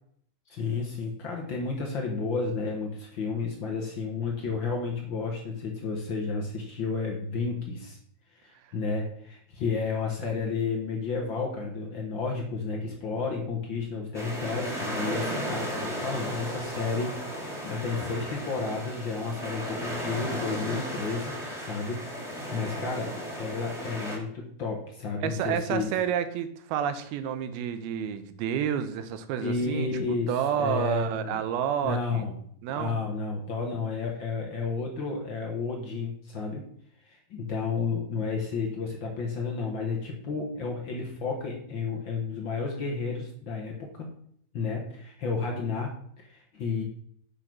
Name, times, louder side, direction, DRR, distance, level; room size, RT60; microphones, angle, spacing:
voice 1, 0.5-8.0 8.3-25.9 29.4-31.4 31.8-32.4 32.7-36.6 37.0-44.1 44.5-46.8, left 4 dB, 75° left, 0 dB, 1.1 m, -32 dB
sound 1, 14.1-24.2, equal, ahead, 1.6 m, -35 dB
Bowed string instrument, 15.0-19.3, right 1 dB, 40° right, 1.5 m, -53 dB
voice 2, 25.2-29.9 30.3-32.3 32.6-33.0, right 9 dB, 90° right, 11 dB, 2.7 m, -29 dB
8.4 x 5.3 x 6.2 m, 0.65 s
omnidirectional pair, 4.3 m